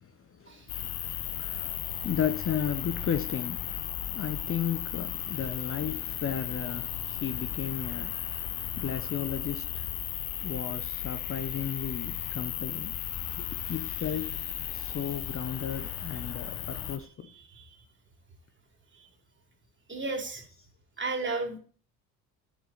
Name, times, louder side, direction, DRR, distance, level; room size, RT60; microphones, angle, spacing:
voice 1, 0.0-9.9 10.4-13.0 13.4-14.3 14.7-17.3, left 8 dB, 30° left, 0.7 m, -35 dB
sound 1, 0.7-17.0, left 11 dB, 70° left, 1.3 m, -35 dB
voice 2, 17.3-17.7 18.9-19.1 19.9-20.4 21.0-21.6, right 3 dB, 25° right, 2.9 m, -34 dB
9.3 x 7.2 x 4.0 m
hypercardioid pair, 65°, 43 cm